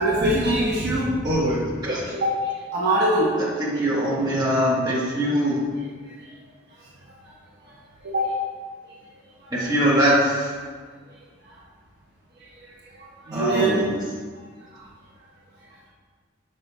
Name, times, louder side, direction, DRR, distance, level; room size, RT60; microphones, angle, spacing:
voice 1, 0.0-1.2 2.2-3.4 7.6-7.7 8.0-8.4 9.4-9.5 12.4-12.7 13.0-13.8 14.7-14.9, right 1 dB, 55° right, -6 dB, 1.0 m, -23 dB
voice 2, 1.2-2.1 3.6-5.6 9.5-10.5 13.3-14.0, equal, 20° right, -8 dB, 1.5 m, -22 dB
5.6 x 5.1 x 3.4 m, 1.5 s
head